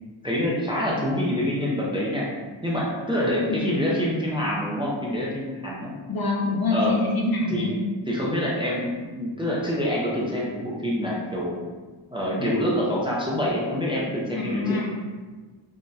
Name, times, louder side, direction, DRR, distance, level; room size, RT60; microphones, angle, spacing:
voice 1, 0.2-2.3 2.6-5.9 6.7-7.0 7.5-7.7 8.1-11.6 12.1-14.8, equal, 10° right, -5 dB, 0.4 m, -26 dB
voice 2, 6.1-7.8 14.4-14.9, left 3 dB, 50° left, -1 dB, 0.6 m, -25 dB
3.7 x 2.1 x 2.6 m, 1.3 s
wide cardioid pair, 125°, 48 cm